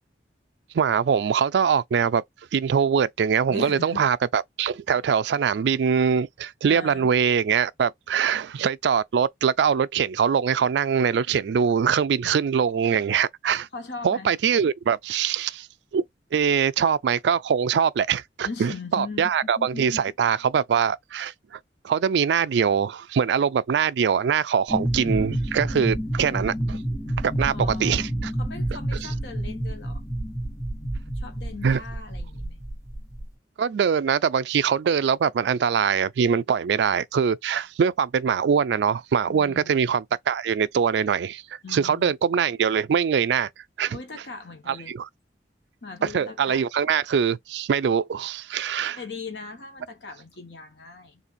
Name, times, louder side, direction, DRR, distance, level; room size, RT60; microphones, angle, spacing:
voice 1, 0.7-2.2 2.5-13.7 14.0-15.7 15.9-16.0 16.3-21.6 21.8-26.8 27.2-28.3 31.6-31.8 33.6-43.5 43.8-44.0 44.7-45.1 46.0-49.0, right 7 dB, 70° right, 0.3 m, -23 dB
voice 2, 3.5-4.1 6.7-7.1 13.7-14.3 18.4-20.0 27.4-30.0 31.1-32.6 39.3-39.8 41.6-42.1 43.9-44.9 45.8-46.6 49.0-51.2, left 4 dB, 75° left, 1.2 m, -39 dB
sound 1, 24.7-33.3, right 1 dB, 20° left, 1.2 m, -29 dB
4.1 x 2.5 x 2.5 m
head